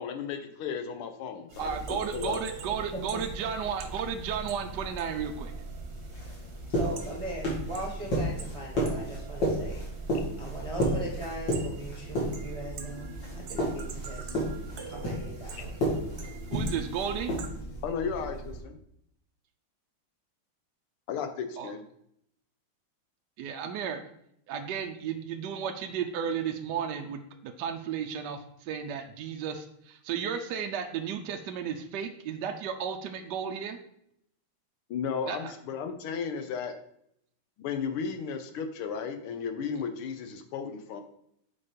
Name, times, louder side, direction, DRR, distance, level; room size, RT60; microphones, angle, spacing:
voice 1, 0.0-2.4 17.8-18.8 21.1-21.8 34.9-36.7 37.6-41.0, left 6 dB, 80° left, 7 dB, 1.7 m, -34 dB
sound 1, 1.5-18.6, equal, 55° left, 3.2 m, -34 dB
sound 2, 1.5-17.5, right 5 dB, 55° right, 1.3 m, -47 dB
voice 2, 1.6-5.5 16.5-17.3 21.6-21.7 23.4-24.0 24.5-33.8 35.3-35.5, right 7 dB, 70° right, 5 dB, 1.0 m, -33 dB
voice 3, 6.7-9.8 10.4-14.4 14.9-15.8, right 1 dB, 20° right, -2 dB, 0.9 m, -40 dB
7.2 x 4.2 x 5.2 m, 0.73 s
omnidirectional pair, 2.4 m